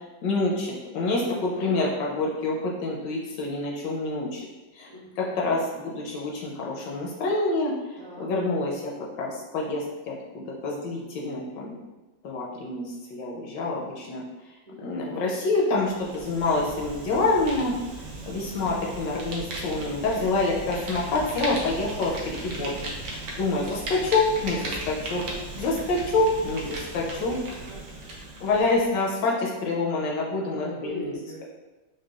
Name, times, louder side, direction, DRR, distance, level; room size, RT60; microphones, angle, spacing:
voice 1, 0.2-4.4 4.8-4.9 5.2-8.9 9.2-11.8 12.2-14.2 14.8-17.7 18.2-22.7 23.0-27.4 28.4-31.1, left 3 dB, 75° left, -2 dB, 1.1 m, -27 dB
voice 2, 1.3-1.7 4.9-5.3 8.0-8.3 14.7-15.3 27.4-28.1 30.8-31.4, equal, 50° right, -8 dB, 1.2 m, -41 dB
Fire, 15.7-29.1, right 2 dB, 75° right, 0.7 m, -37 dB
4.7 x 2.1 x 2.3 m, 1.1 s
omnidirectional pair, 2.1 m